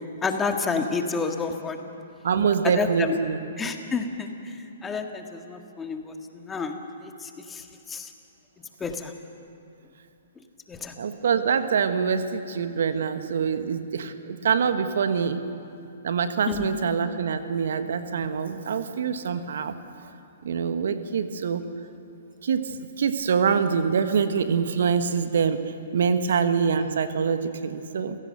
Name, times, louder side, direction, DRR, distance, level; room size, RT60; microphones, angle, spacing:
voice 1, 0.2-1.8 2.7-3.2 3.6-4.3 4.8-6.8 7.2-7.6 7.9-8.1 8.8-9.1 10.7-10.9 16.5-16.6, left 4 dB, 15° left, 4 dB, 1.8 m, -29 dB
voice 2, 2.2-3.4 11.0-15.4 16.0-19.8 20.0-20.1 20.4-21.6 22.4-25.6 25.9-28.2, right 6 dB, 65° right, 10 dB, 1.3 m, -25 dB
29.0 x 17.0 x 6.7 m, 2.6 s
figure-of-eight pair, 120°, 0 cm